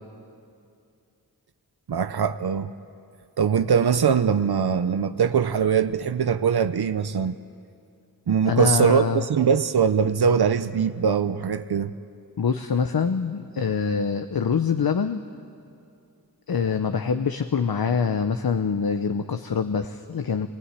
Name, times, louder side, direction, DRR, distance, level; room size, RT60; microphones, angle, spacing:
voice 1, 1.9-2.7 3.4-7.4 8.3-11.9, right 7 dB, 80° right, 0.8 m, -22 dB
voice 2, 8.5-9.2 12.4-15.2 16.5-20.5, left 6 dB, 65° left, 0.9 m, -24 dB
24.5 x 20.5 x 9.9 m
wide cardioid pair, 75°, 38 cm